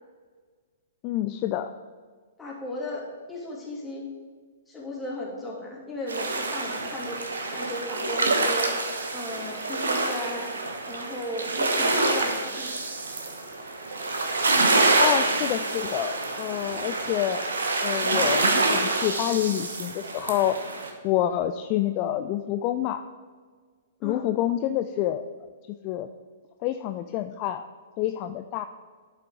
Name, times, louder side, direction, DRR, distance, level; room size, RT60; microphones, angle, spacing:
voice 1, 1.0-1.7 15.0-17.4 17.8-20.6 21.0-23.0 24.0-25.2 25.8-26.1 26.6-27.7 28.0-28.7, left 12 dB, 35° left, 9 dB, 0.4 m, -27 dB
voice 2, 2.4-4.1 4.7-7.2 7.5-8.8 9.1-10.5 10.9-12.7 24.0-24.2, left 1 dB, 10° left, -5 dB, 2.6 m, -35 dB
sound 1, 6.1-20.9, right 3 dB, 70° right, 1.2 m, -26 dB
11.5 x 5.7 x 3.7 m, 1.5 s
figure-of-eight pair, 115°, 0 cm